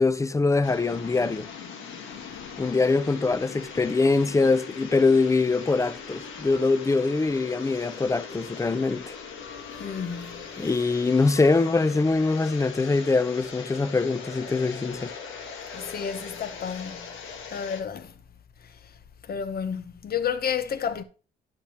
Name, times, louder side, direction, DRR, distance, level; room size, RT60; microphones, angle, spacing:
voice 1, 0.0-1.5 2.6-9.2 10.6-15.1, left 3 dB, 15° left, 0.5 m, -23 dB
sound 1, 0.6-17.8, left 6 dB, 80° left, 1.5 m, -40 dB
voice 2, 9.8-10.4 15.7-17.1 17.5-18.1 18.6-18.7 19.2-21.0, left 7 dB, 50° left, 0.9 m, -31 dB
9.9 x 6.7 x 2.9 m
cardioid pair, 90°, 20 cm